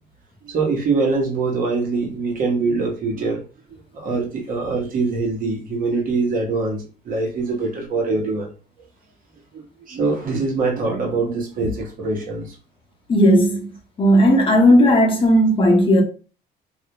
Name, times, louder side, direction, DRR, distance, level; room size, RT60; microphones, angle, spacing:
voice 1, 0.4-3.4 3.7-8.5 9.5-12.5, right 3 dB, 55° right, 0.9 m, -23 dB
voice 2, 13.1-13.6 14.0-16.0, equal, 30° left, 0.7 m, -14 dB
2.4 x 2.1 x 2.9 m
cardioid pair, 110°, 17 cm